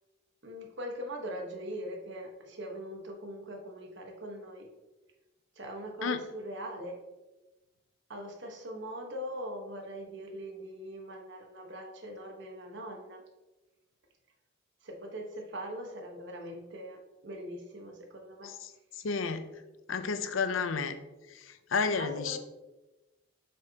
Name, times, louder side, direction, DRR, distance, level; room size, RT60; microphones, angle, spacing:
voice 1, 0.4-4.7 5.5-7.0 8.1-13.2 14.8-18.5 21.9-22.4, equal, 65° right, 2 dB, 1.2 m, -41 dB
voice 2, 19.0-19.4 19.9-21.0 21.3-22.4, left 5 dB, 85° left, 10 dB, 0.6 m, -31 dB
7.5 x 5.5 x 2.8 m, 1.1 s
head